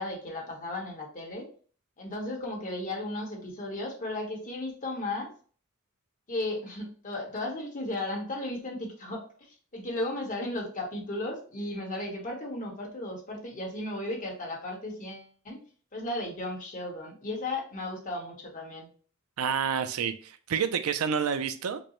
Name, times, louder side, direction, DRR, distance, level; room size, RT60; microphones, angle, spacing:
voice 1, 0.0-1.5 2.0-5.3 6.3-9.2 9.7-15.6 15.9-18.9, left 1 dB, 40° left, 1.1 m, -35 dB
voice 2, 19.4-21.8, right 7 dB, 85° right, 0.4 m, -29 dB
5.1 x 2.1 x 3.0 m
head